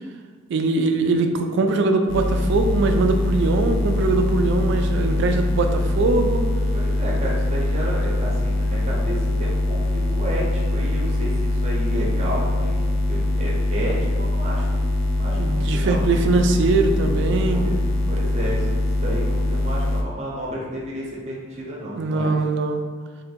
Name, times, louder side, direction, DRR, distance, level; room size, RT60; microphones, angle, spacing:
voice 1, 0.5-6.5 15.4-17.7 21.9-22.8, right 3 dB, 60° right, 5 dB, 0.3 m, -21 dB
sound 1, 2.1-20.0, left 1 dB, 65° left, 0.4 m, -23 dB
voice 2, 6.7-14.8 15.2-16.3 17.5-17.8 18.1-22.4, right 1 dB, 35° right, -4 dB, 0.7 m, -31 dB
2.6 x 2.5 x 4.1 m, 1.5 s
head